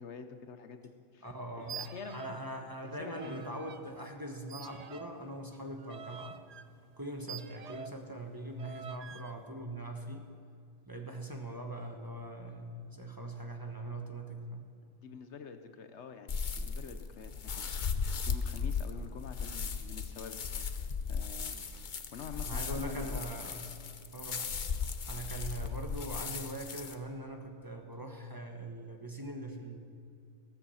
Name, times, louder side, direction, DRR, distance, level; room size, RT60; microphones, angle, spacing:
voice 1, 0.0-1.3 1.6-2.4 3.0-3.5 15.0-17.7 18.2-21.6 22.1-23.2, left 6 dB, 75° left, 8 dB, 1.2 m, -47 dB
voice 2, 1.2-1.9 2.1-6.4 7.0-10.2 10.8-14.7 22.4-23.7 24.1-24.5 25.1-29.8, right 1 dB, 20° right, 3 dB, 1.2 m, -42 dB
sound 1, 1.6-2.5 2.8-3.8 4.5-8.1 8.6-9.3, right 7 dB, 50° right, 0.4 m, -47 dB
sound 2, 16.3-26.9, left 5 dB, 45° left, 0.8 m, -37 dB
16.5 x 14.5 x 5.7 m, 2.4 s
omnidirectional pair, 1.2 m